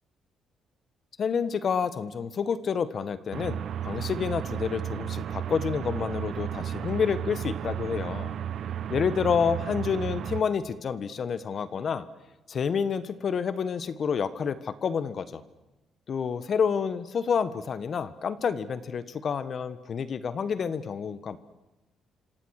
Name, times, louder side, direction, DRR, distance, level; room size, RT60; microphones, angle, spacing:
voice 1, 1.2-8.4 8.9-12.0 12.5-15.4 16.1-21.4, left 6 dB, 50° left, 13 dB, 1.3 m, -29 dB
sound 1, 3.3-10.4, right 10 dB, 65° right, 1.0 m, -33 dB
26.5 x 26.5 x 6.6 m, 1.1 s
cardioid pair, 90°, 0 cm